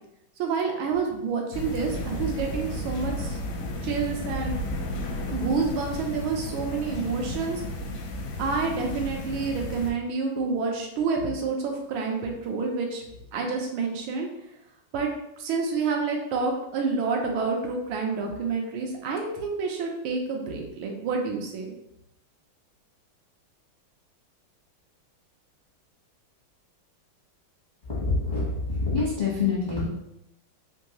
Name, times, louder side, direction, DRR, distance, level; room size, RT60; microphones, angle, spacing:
voice 1, 0.4-3.4 3.8-4.6 5.3-7.6 8.4-13.0 13.3-14.3 14.9-15.1 15.4-21.7, right 4 dB, 85° right, 1 dB, 1.5 m, -28 dB
sound 1, 1.5-9.9, left 1 dB, 75° left, 1.0 m, -33 dB
voice 2, 27.8-29.9, left 4 dB, 50° left, -8 dB, 0.5 m, -26 dB
3.9 x 2.6 x 2.9 m, 0.83 s
omnidirectional pair, 2.2 m